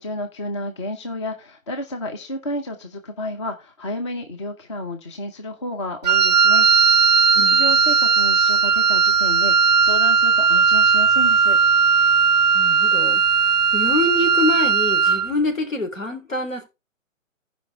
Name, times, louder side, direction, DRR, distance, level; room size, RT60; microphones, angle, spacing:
voice 1, 0.0-6.7 7.0-11.6, left 1 dB, 20° left, 0.7 m, -31 dB
Wind instrument woodwind instrument, 6.0-15.3, right 6 dB, 35° right, 0.5 m, -17 dB
voice 2, 12.5-16.6, left 2 dB, 70° left, 3.7 m, -26 dB
15.5 x 5.3 x 3.5 m
figure-of-eight pair, 135°, 40 cm